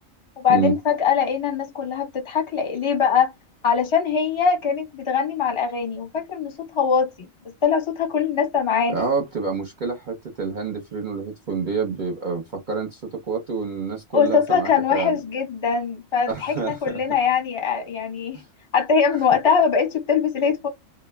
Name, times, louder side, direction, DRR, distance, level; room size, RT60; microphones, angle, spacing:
voice 1, 0.4-3.3 3.6-7.3 7.6-9.0 14.1-18.4 18.7-20.7, left 6 dB, 25° left, 0.7 m, -22 dB
voice 2, 8.9-13.0 13.3-15.2 16.3-16.8 18.3-18.4, right 5 dB, 45° right, 0.7 m, -27 dB
2.3 x 2.0 x 3.3 m
omnidirectional pair, 1.4 m